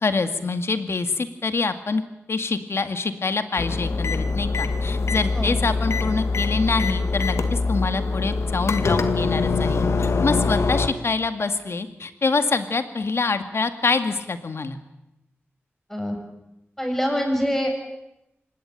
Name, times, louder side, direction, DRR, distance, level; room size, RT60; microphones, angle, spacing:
voice 1, 0.0-2.0 2.3-14.8, left 4 dB, 70° left, 9 dB, 2.2 m, -25 dB
sound 1, 3.6-10.9, left 3 dB, 85° left, 2.0 m, -23 dB
voice 2, 16.8-17.7, equal, 10° left, 2 dB, 7.5 m, -24 dB
26.0 x 20.0 x 9.3 m, 0.89 s
wide cardioid pair, 90°, 5 cm